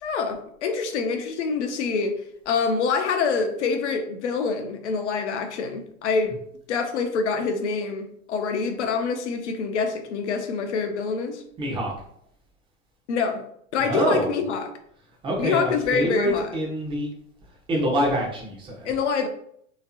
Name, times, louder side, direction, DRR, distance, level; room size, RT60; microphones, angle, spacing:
voice 1, 0.0-2.2 2.5-6.4 6.7-11.4 13.1-13.4 13.7-14.7 15.4-16.5 18.8-19.3, left 5 dB, 50° left, 6 dB, 0.7 m, -26 dB
voice 2, 11.6-11.9 13.9-14.4 15.2-17.1 17.7-18.9, right 1 dB, 10° right, -1 dB, 0.7 m, -25 dB
3.2 x 2.9 x 2.8 m, 0.68 s
figure-of-eight pair, 100°, 43 cm